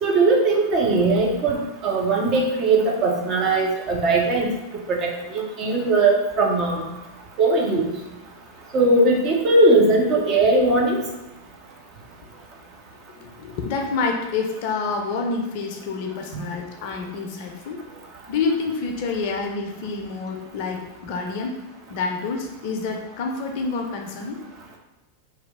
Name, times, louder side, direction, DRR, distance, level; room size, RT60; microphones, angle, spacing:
voice 1, 0.0-4.5 4.9-6.8 7.4-7.9 8.7-11.0 16.3-16.4, right 2 dB, 35° right, 0 dB, 0.6 m, -19 dB
voice 2, 13.2-17.8 18.3-21.5 21.9-24.4, left 4 dB, 50° left, 2 dB, 0.5 m, -28 dB
2.9 x 2.3 x 3.4 m, 0.99 s
figure-of-eight pair, 90°, 0 cm